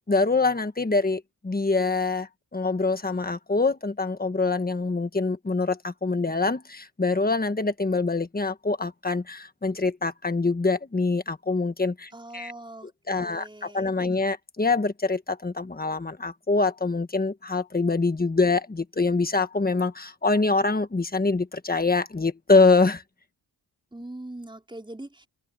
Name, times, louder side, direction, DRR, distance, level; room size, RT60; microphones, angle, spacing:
voice 1, 0.1-12.5 13.1-23.0, left 3 dB, 20° left, 1.4 m, -25 dB
voice 2, 12.1-12.9 13.2-14.2 23.9-25.3, right 1 dB, 10° right, 5.0 m, -42 dB
wide cardioid pair, 135°, 43 cm